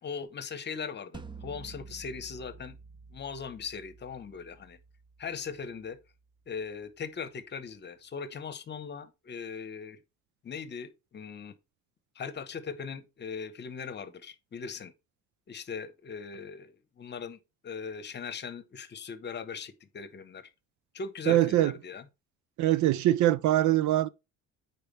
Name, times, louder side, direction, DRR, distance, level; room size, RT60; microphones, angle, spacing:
voice 1, 0.0-2.8 3.1-4.8 5.2-6.0 6.5-10.0 10.4-11.5 12.1-14.9 15.5-17.4 17.6-20.5 20.9-22.0, left 6 dB, 30° left, 1.0 m, -39 dB
sound 1, 1.1-6.2, right 4 dB, 15° right, 0.6 m, -50 dB
voice 2, 21.3-21.7 22.6-24.1, right 14 dB, 60° right, 0.5 m, -23 dB
9.0 x 4.5 x 3.2 m
cardioid pair, 125°, 33 cm